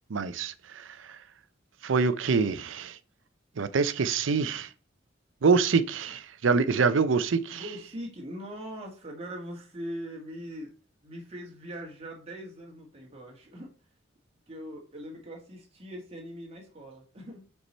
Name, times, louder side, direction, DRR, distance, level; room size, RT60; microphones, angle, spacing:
voice 1, 0.1-0.9 1.8-3.0 3.6-4.7 5.4-7.6, right 5 dB, 90° right, 0.5 m, -25 dB
voice 2, 7.5-10.7 11.0-13.7 14.5-17.4, equal, 30° right, 1.8 m, -41 dB
5.2 x 4.7 x 4.2 m
head